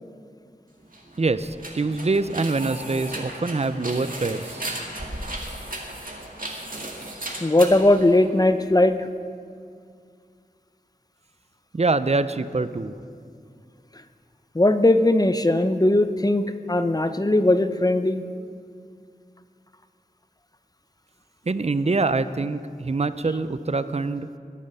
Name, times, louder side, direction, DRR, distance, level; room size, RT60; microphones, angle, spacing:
sound 1, 0.8-8.7, right 1 dB, 60° right, 2.0 m, -36 dB
voice 1, 1.2-4.7 11.7-12.9 21.5-24.3, right 3 dB, 40° right, 13 dB, 0.5 m, -25 dB
voice 2, 7.4-9.0 14.5-18.2, left 1 dB, 25° left, 10 dB, 0.7 m, -19 dB
21.0 x 7.3 x 5.6 m, 2.2 s
wide cardioid pair, 45°, 16 cm